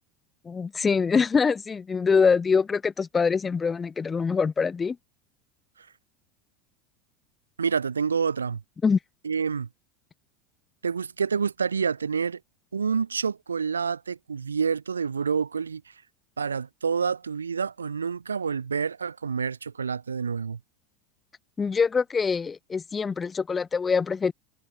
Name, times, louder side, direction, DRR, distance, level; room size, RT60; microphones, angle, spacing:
voice 1, 0.4-5.0 8.8-9.0 21.6-24.3, left 5 dB, 20° left, 0.8 m, -24 dB
voice 2, 7.6-8.6 9.2-9.7 10.8-12.4 12.7-15.8 16.4-20.6, right 6 dB, 80° right, 1.9 m, -28 dB
figure-of-eight pair, 75°, 0 cm